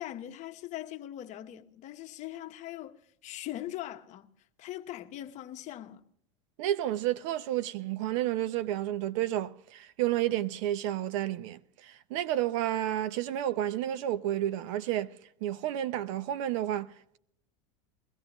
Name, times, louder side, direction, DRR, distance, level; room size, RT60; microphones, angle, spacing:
voice 1, 0.0-4.3 4.6-6.0, left 13 dB, 45° left, 1.0 m, -41 dB
voice 2, 6.6-15.1 15.4-17.2, right 12 dB, 70° right, 0.6 m, -31 dB
21.5 x 15.0 x 3.0 m
supercardioid pair, 115°, 17 cm